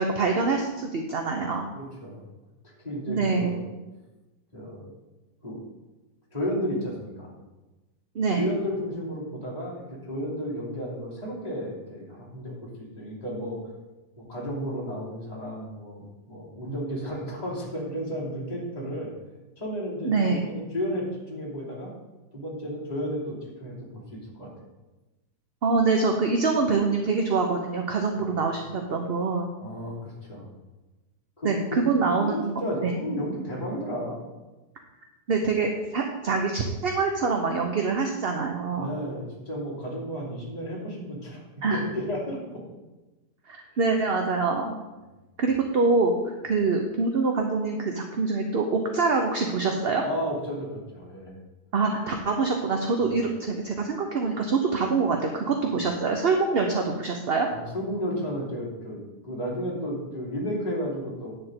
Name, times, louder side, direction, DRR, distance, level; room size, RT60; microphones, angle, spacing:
voice 1, 0.0-1.6 3.1-3.6 8.1-8.4 20.0-20.4 25.6-29.5 31.4-33.0 35.3-38.9 41.6-41.8 43.5-44.7 45.4-50.0 51.7-57.5, right 4 dB, 45° right, 3 dB, 0.8 m, -25 dB
voice 2, 1.7-2.2 2.8-3.6 4.5-4.9 5.4-5.6 6.3-7.3 8.4-12.7 12.9-13.6 14.2-19.1 19.6-21.9 22.3-24.5 28.1-28.3 29.6-30.5 31.4-34.2 38.8-41.4 41.7-42.6 43.9-44.0 50.0-51.4 53.1-53.2 57.5-61.3, equal, 25° left, -6 dB, 3.0 m, -33 dB
9.9 x 4.4 x 7.8 m, 1.1 s
omnidirectional pair, 1.8 m